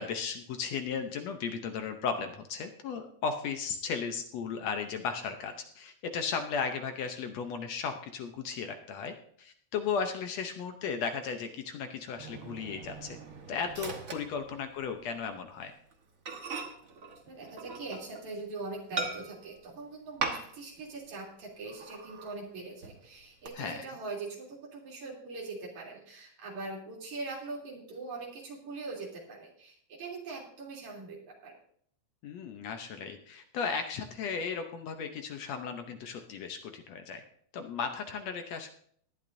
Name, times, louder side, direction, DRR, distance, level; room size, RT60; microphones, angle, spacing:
voice 1, 0.0-13.2 13.5-15.7 23.6-23.9 32.2-37.2 37.5-38.7, left 6 dB, 70° left, 6 dB, 1.8 m, -35 dB
Microwave oven, 12.2-15.1 15.4-15.6 15.9-16.0 16.3-18.3 19.0-19.6 20.2-20.8 21.1-21.2 21.6-22.4 22.8-23.5, right 4 dB, 50° right, 1.0 m, -39 dB
voice 2, 17.3-31.6, right 3 dB, 70° right, -3 dB, 4.5 m, -42 dB
19.0 x 11.5 x 2.6 m, 0.63 s
omnidirectional pair, 3.5 m